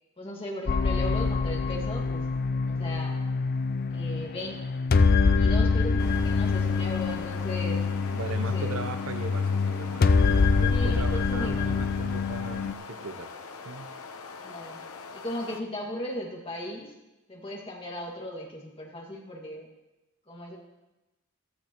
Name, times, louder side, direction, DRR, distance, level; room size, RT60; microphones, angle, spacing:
voice 1, 0.2-2.3 2.7-3.1 3.9-4.6 5.4-7.8 8.4-8.7 10.7-11.8 14.4-14.8 15.1-16.9 17.3-19.7 20.3-20.6, left 1 dB, 25° left, -1 dB, 2.0 m, -37 dB
sound 1, 0.7-12.7, left 4 dB, 45° left, 0.4 m, -25 dB
sound 2, 5.9-15.6, left 4 dB, 85° left, 0.9 m, -43 dB
voice 2, 8.1-13.3 13.6-13.9, right 3 dB, 65° right, 8 dB, 0.8 m, -38 dB
15.0 x 13.0 x 3.0 m, 1.0 s
head